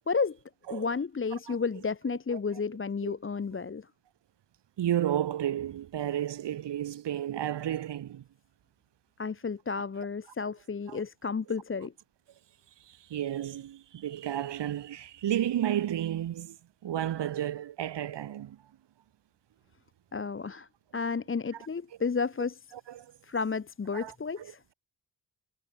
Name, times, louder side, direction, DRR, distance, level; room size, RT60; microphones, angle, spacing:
voice 1, 0.1-0.4 0.7-3.9 9.2-11.9 20.1-22.6 23.2-24.6, left 5 dB, 30° left, 0.9 m, -32 dB
voice 2, 4.8-8.2 10.9-11.0 12.9-16.6 16.8-18.6 22.9-23.1 23.9-24.5, right 11 dB, 75° right, 1.2 m, -32 dB
cardioid pair, 60°, 43 cm